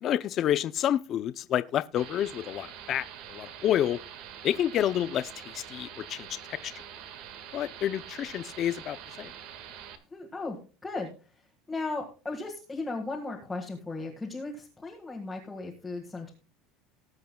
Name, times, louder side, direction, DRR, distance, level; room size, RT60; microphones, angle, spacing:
voice 1, 0.0-4.0 4.4-6.7 7.5-9.3, left 11 dB, 30° left, 0.4 m, -29 dB
sound 1, 2.0-10.0, right 9 dB, 50° right, 1.6 m, -45 dB
voice 2, 10.1-11.4 11.7-16.3, left 3 dB, 5° left, 1.6 m, -36 dB
19.5 x 8.0 x 2.2 m
cardioid pair, 180°, 0 cm